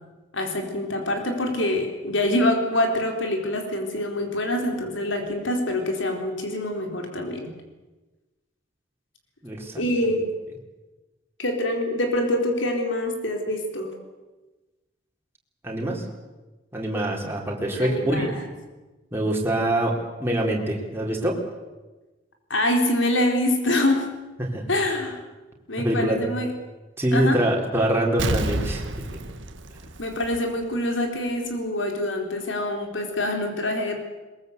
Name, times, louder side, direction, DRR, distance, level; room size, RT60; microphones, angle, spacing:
voice 1, 0.3-7.5 9.8-10.3 11.4-13.9 17.8-18.4 22.5-24.1 24.7-25.2 25.7-26.5 27.1-27.4 30.0-34.0, left 1 dB, 80° left, 3 dB, 4.2 m, -25 dB
voice 2, 9.4-9.7 10.0-10.1 15.6-16.0 16.7-18.3 19.1-21.4 24.4-24.6 25.8-26.2 27.0-28.8, right 1 dB, 10° right, -1 dB, 3.9 m, -24 dB
Explosion, 28.2-30.8 31.1-31.2, right 1 dB, 80° right, 1.8 m, -30 dB
22.0 x 21.5 x 8.1 m, 1.2 s
head